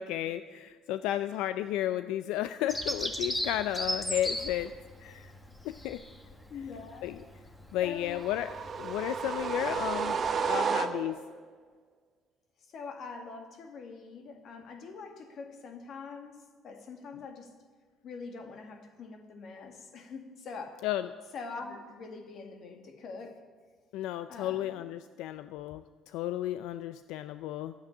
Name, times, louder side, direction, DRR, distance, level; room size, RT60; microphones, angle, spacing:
voice 1, 0.0-4.7 5.0-5.3 5.6-6.0 7.0-7.2 7.7-8.5 8.8-11.2 20.8-21.1 23.9-25.8 26.1-27.7, left 12 dB, 85° left, 12 dB, 0.4 m, -33 dB
Bird vocalization bird call bird song, 2.7-10.5, equal, 5° left, 1.3 m, -38 dB
voice 2, 6.5-7.2 7.8-8.3 12.7-16.4 16.6-17.5 18.0-20.8 21.3-23.4 24.3-24.9, left 4 dB, 50° left, 5 dB, 2.0 m, -44 dB
sound 1, 8.2-11.4, right 6 dB, 35° right, 0.9 m, -32 dB
12.5 x 8.4 x 9.8 m, 1.5 s
cardioid pair, 140°, 0 cm